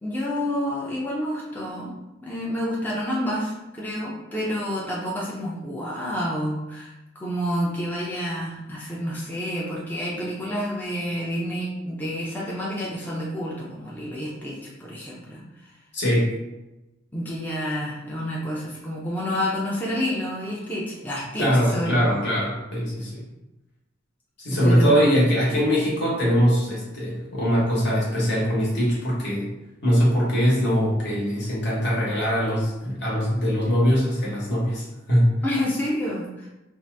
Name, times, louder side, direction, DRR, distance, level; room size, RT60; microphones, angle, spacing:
voice 1, 0.0-2.0 2.2-15.4 17.1-22.2 24.5-25.1 35.4-36.5, equal, 10° left, -6 dB, 0.5 m, -29 dB
voice 2, 15.9-16.3 21.4-23.2 24.4-29.5 29.8-35.3, equal, 60° left, -5 dB, 1.1 m, -22 dB
2.7 x 2.4 x 3.3 m, 1.0 s
head